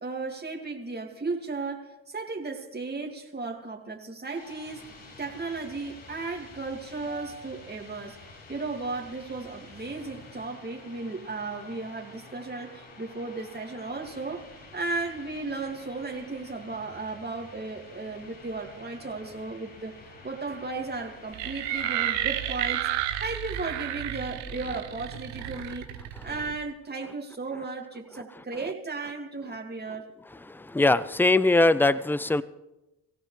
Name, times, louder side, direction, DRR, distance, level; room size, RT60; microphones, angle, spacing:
voice 1, 0.0-4.8 5.2-8.2 8.5-14.5 14.7-20.0 20.2-25.9 26.2-30.1, right 3 dB, 20° right, 1 dB, 2.3 m, -35 dB
sound 1, 4.3-22.6, left 3 dB, 65° left, 7.6 m, -49 dB
sound 2, 21.3-26.6, right 11 dB, 90° right, 1.2 m, -31 dB
voice 2, 30.5-32.4, left 2 dB, 5° left, 18 dB, 0.5 m, -21 dB
24.0 x 15.5 x 3.3 m, 0.99 s
hypercardioid pair, 55°, 48 cm